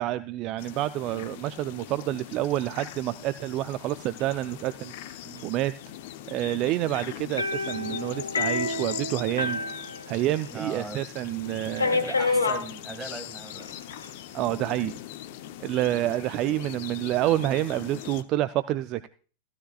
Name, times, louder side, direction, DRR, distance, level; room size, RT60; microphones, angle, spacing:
voice 1, 0.0-5.7 6.3-9.6 10.1-12.1 14.3-14.9 15.6-19.1, right 15 dB, 40° right, 14 dB, 0.4 m, -28 dB
sound 1, 0.6-18.2, left 12 dB, 50° left, 0.7 m, -41 dB
sound 2, 7.4-10.6 10.9-11.0 11.8-12.7 13.6-14.1, left 3 dB, 75° left, 1.2 m, -28 dB
voice 2, 10.5-11.1 12.0-13.8, right 2 dB, 10° right, 3 dB, 2.4 m, -39 dB
15.0 x 13.0 x 2.4 m, 0.39 s
figure-of-eight pair, 90°, 0 cm